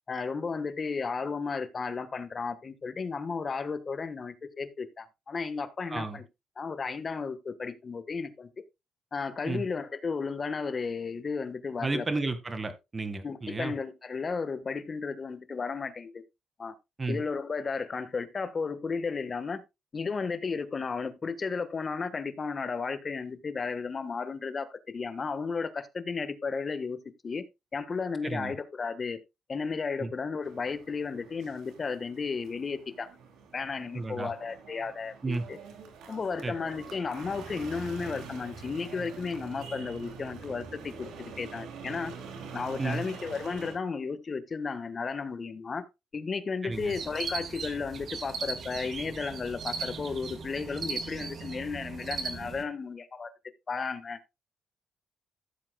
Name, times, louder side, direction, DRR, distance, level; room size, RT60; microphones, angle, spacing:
voice 1, 0.1-6.2 6.6-8.5 9.1-12.0 13.2-16.2 16.6-16.7 17.1-19.6 19.9-27.4 27.7-29.2 29.5-33.1 33.5-35.6 36.1-42.1 42.5-45.9 46.1-53.3 53.7-54.2, left 5 dB, 35° left, 1.3 m, -34 dB
voice 2, 5.9-6.2 9.4-9.6 11.8-13.7 17.0-17.2 28.2-28.5 30.0-30.1 33.9-34.3 35.2-35.5 36.4-36.5 42.8-43.1 46.6-47.0, right 3 dB, 25° right, 1.7 m, -32 dB
sound 1, 30.4-43.8, right 5 dB, 85° right, 2.6 m, -45 dB
sound 2, 46.7-52.6, right 5 dB, 55° right, 1.9 m, -38 dB
15.0 x 7.6 x 2.3 m
cardioid pair, 90°, 0 cm